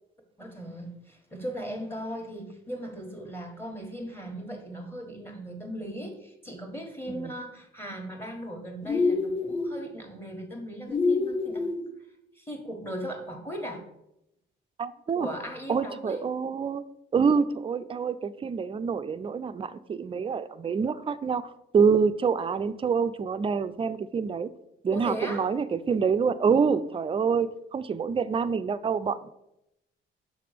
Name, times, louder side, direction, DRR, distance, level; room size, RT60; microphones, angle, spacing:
voice 1, 0.4-11.7 12.3-13.8 15.1-16.2 24.9-25.5, equal, 10° left, 3 dB, 1.5 m, -38 dB
sound 1, 8.8-9.8 10.9-11.8, left 3 dB, 25° left, 1.6 m, -26 dB
voice 2, 14.8-15.3 15.7-16.8 17.1-21.5 21.7-24.5 24.8-29.3, right 6 dB, 25° right, 12 dB, 0.4 m, -26 dB
6.4 x 3.4 x 5.1 m, 0.84 s
cardioid pair, 90°, 20 cm